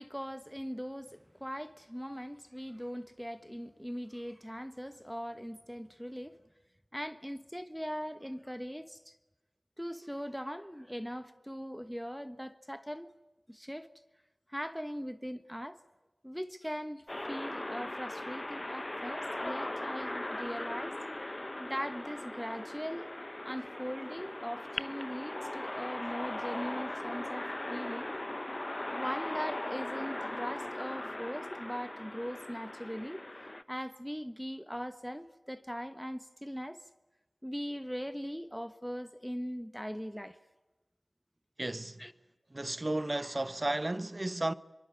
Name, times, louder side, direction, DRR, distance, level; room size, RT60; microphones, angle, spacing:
voice 1, 0.0-6.4 6.9-9.2 9.8-13.1 13.5-13.9 14.5-15.8 16.2-21.0 21.6-23.1 23.4-28.1 28.9-33.2 33.7-36.8 37.4-40.4 42.0-42.1, equal, ahead, 1.3 m, -40 dB
sound 1, 17.1-33.6, left 1 dB, 30° left, 1.1 m, -39 dB
voice 2, 41.6-42.1 42.5-44.5, right 1 dB, 35° right, 1.1 m, -33 dB
24.0 x 24.0 x 8.2 m
wide cardioid pair, 45°, 0 cm